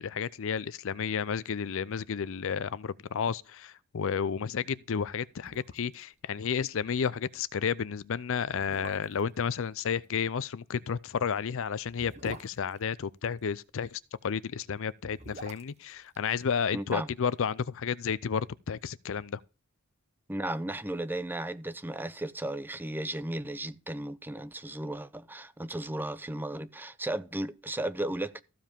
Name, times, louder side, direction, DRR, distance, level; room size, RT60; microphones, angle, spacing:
voice 1, 0.0-19.4, left 6 dB, 65° left, 0.5 m, -32 dB
sound 1, 5.4-6.0 6.3-6.4 6.8-7.0 7.7-7.8 8.4-9.4 10.9-13.5 14.8-17.0 17.3-17.4, right 2 dB, 30° right, 1.2 m, -48 dB
voice 2, 16.7-17.1 20.3-28.4, right 1 dB, 10° right, 0.6 m, -35 dB
14.5 x 5.2 x 5.2 m
head